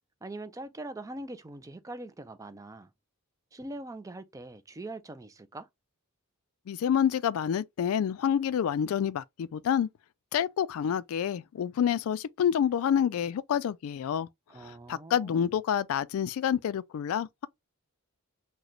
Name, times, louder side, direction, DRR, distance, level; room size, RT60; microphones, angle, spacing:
voice 1, 0.2-2.9 3.5-5.7 14.5-15.4, right 2 dB, 15° right, 0.4 m, -42 dB
voice 2, 6.7-9.9 10.3-14.3 14.6-17.5, left 8 dB, 70° left, 0.3 m, -28 dB
3.9 x 2.2 x 3.0 m
head